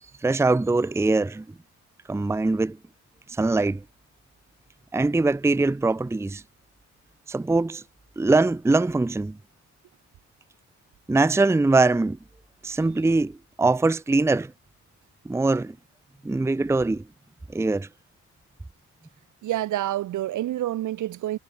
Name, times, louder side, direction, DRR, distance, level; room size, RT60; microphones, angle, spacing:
voice 1, 0.2-1.5 2.1-2.8 3.3-3.8 4.9-6.4 7.3-7.8 8.2-9.4 11.1-12.2 12.6-14.5 15.2-15.8 16.2-17.0 17.5-17.9, right 3 dB, 10° right, 0.7 m, -22 dB
voice 2, 19.4-21.4, right 13 dB, 80° right, 3.9 m, -28 dB
cardioid pair, 90°, 30 cm